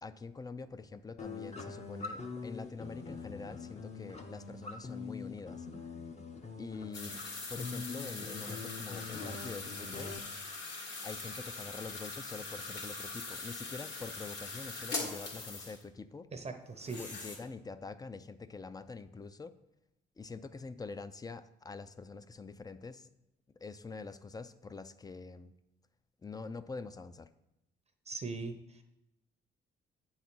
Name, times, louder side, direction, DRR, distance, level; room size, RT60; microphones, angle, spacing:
voice 1, 0.0-5.7 6.6-7.2 7.5-10.2 11.0-16.3 17.0-19.6 20.2-23.1 23.6-25.5 26.2-27.3, left 4 dB, 20° left, 13 dB, 0.4 m, -45 dB
sound 1, 1.2-10.2, left 4 dB, 35° left, 0.8 m, -44 dB
sound 2, 6.9-15.8 16.8-17.4, left 3 dB, 65° left, 2.1 m, -42 dB
voice 2, 16.3-17.0 28.1-28.8, right 4 dB, 35° right, 7 dB, 0.7 m, -40 dB
8.4 x 4.1 x 6.0 m, 0.88 s
cardioid pair, 90°, 20 cm